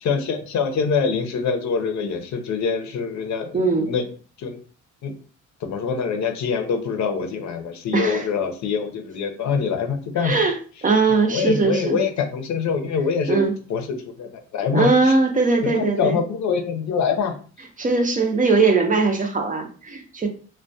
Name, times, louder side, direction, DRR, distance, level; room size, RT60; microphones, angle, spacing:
voice 1, 0.0-4.1 4.4-4.6 5.0-5.1 5.6-10.4 11.1-13.4 13.7-13.9 14.2-15.2 15.6-17.3, left 6 dB, 65° left, 5 dB, 0.6 m, -24 dB
voice 2, 3.5-3.9 7.9-8.3 10.2-12.0 13.3-13.5 14.7-16.2 17.8-20.3, right 4 dB, 25° right, 3 dB, 0.5 m, -20 dB
2.2 x 2.2 x 2.6 m, 0.40 s
cardioid pair, 90°, 30 cm